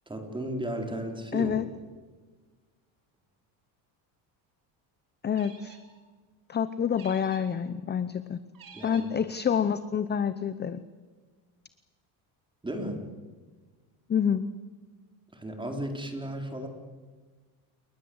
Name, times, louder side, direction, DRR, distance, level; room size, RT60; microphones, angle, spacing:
voice 1, 0.1-1.5 8.7-9.0 12.6-13.0 15.3-16.7, right 1 dB, 10° right, 3 dB, 4.5 m, -34 dB
voice 2, 1.3-1.7 5.2-5.8 6.5-8.4 8.8-10.8 14.1-14.5, left 7 dB, 20° left, 13 dB, 0.8 m, -27 dB
sound 1, 5.3-6.0 6.9-7.6 8.5-9.2, right 5 dB, 45° right, 4.9 m, -51 dB
28.5 x 21.0 x 8.1 m, 1.4 s
cardioid pair, 125°, 48 cm